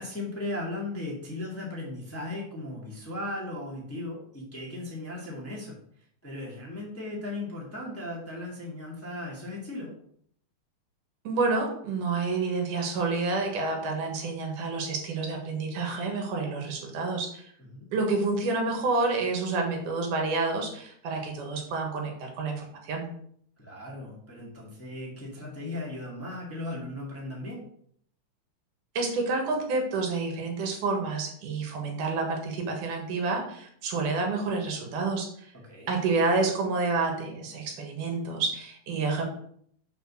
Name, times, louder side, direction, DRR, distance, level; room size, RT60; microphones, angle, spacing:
voice 1, 0.0-5.8 6.2-9.9 17.6-17.8 23.6-27.6 35.5-35.9, left 2 dB, 5° left, -3 dB, 1.5 m, -37 dB
voice 2, 11.2-17.5 17.9-23.1 29.0-35.5 35.9-39.2, right 3 dB, 90° right, 2 dB, 3.0 m, -29 dB
5.8 x 5.2 x 6.2 m, 0.65 s
omnidirectional pair, 3.5 m